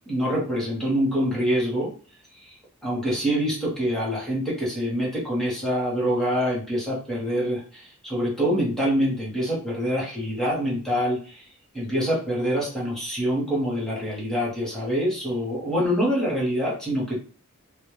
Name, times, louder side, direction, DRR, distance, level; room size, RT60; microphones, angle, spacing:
voice 1, 0.1-1.9 2.3-2.6 2.8-11.5 11.7-17.2, equal, ahead, -6 dB, 0.8 m, -25 dB
2.2 x 2.0 x 3.0 m, 0.40 s
head